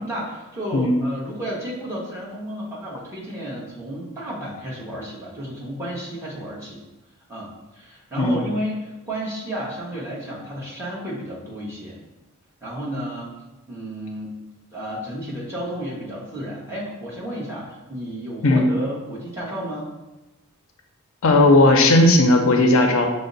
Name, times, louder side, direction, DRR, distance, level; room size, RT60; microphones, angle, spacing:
voice 1, 0.0-6.8 7.3-12.0 12.6-13.3 13.7-14.4 14.7-19.9, equal, 10° right, -6 dB, 1.0 m, -32 dB
voice 2, 0.7-1.0 8.2-8.4 18.4-18.7 21.2-23.1, left 2 dB, 65° left, 3 dB, 0.5 m, -16 dB
5.8 x 2.0 x 3.9 m, 1.0 s
head